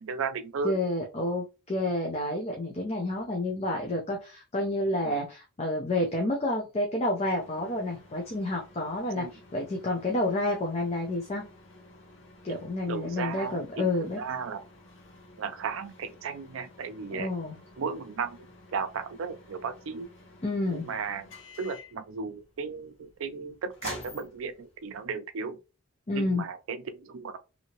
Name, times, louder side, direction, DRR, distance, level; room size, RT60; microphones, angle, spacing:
voice 1, 0.0-0.8 5.0-5.2 9.1-9.3 12.9-14.6 15.4-17.3 17.8-18.5 18.7-20.1 20.7-21.3 21.6-25.6 26.1-27.4, right 5 dB, 70° right, 0.4 m, -35 dB
voice 2, 0.6-11.4 12.4-14.2 17.1-17.6 20.4-20.9 26.1-26.4, left 1 dB, 30° left, 0.5 m, -29 dB
sound 1, 7.3-25.1, left 2 dB, 60° left, 1.3 m, -50 dB
2.8 x 2.7 x 2.8 m
head